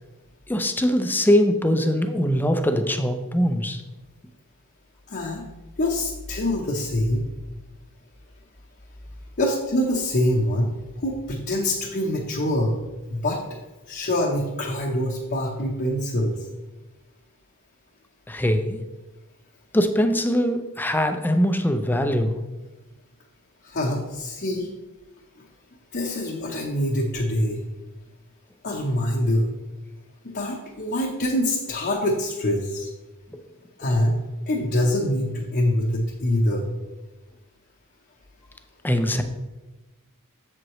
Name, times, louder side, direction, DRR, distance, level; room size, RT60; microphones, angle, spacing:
voice 1, 0.5-3.8 18.3-18.8 19.7-22.3 38.8-39.2, equal, 10° left, 7 dB, 0.5 m, -22 dB
voice 2, 5.1-5.5 5.8-7.2 9.4-12.8 13.1-13.4 13.9-16.5 23.6-24.7 25.4-25.5 25.9-27.6 28.6-29.5 30.2-32.9 33.8-34.2 34.5-36.7, left 1 dB, 45° left, -2 dB, 0.9 m, -25 dB
7.7 x 7.4 x 3.1 m, 1.1 s
head